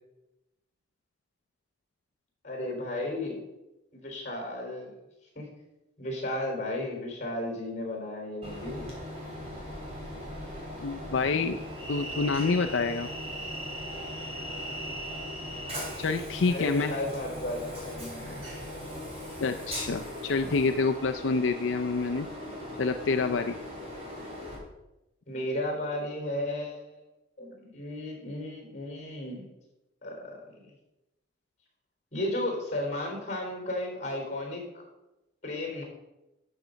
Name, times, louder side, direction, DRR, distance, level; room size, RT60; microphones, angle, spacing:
voice 1, 2.4-3.4 3.9-4.9 5.4-5.5 6.0-8.9 16.5-18.5 25.3-27.0 27.4-29.5 30.0-30.4 32.1-34.8 35.4-35.8, left 1 dB, 40° left, 1 dB, 3.7 m, -34 dB
Train, 8.4-24.6, equal, 30° right, 3.3 m, -39 dB
voice 2, 10.8-11.6 11.9-13.1 16.0-16.9 19.4-22.3 22.8-23.6, left 4 dB, 80° left, 6 dB, 0.5 m, -27 dB
12.0 x 6.9 x 5.1 m, 0.98 s
head